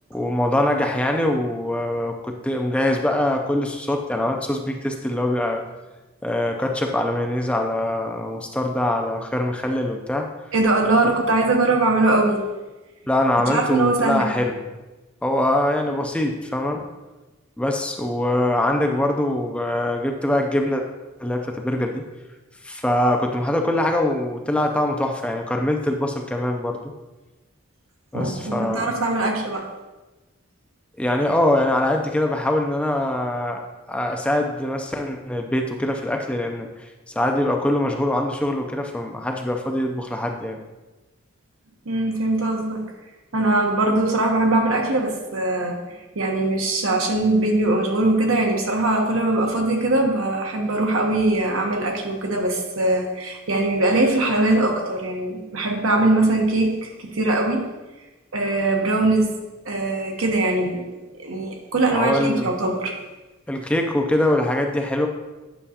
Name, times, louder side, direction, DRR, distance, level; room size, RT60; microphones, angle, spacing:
voice 1, 0.1-5.6 6.2-10.3 13.1-14.6 15.2-16.9 17.6-20.8 21.2-22.0 22.6-26.8 28.1-28.9 31.0-33.6 33.9-40.6 61.9-62.5 63.5-65.1, left 1 dB, 5° left, 3 dB, 0.4 m, -23 dB
voice 2, 10.5-12.4 13.5-14.4 28.1-29.7 41.9-42.9 43.3-45.8 46.1-57.7 58.3-59.3 59.6-60.8 61.2-62.9, right 2 dB, 80° right, 2 dB, 1.0 m, -21 dB
8.9 x 6.1 x 2.8 m, 1.1 s
head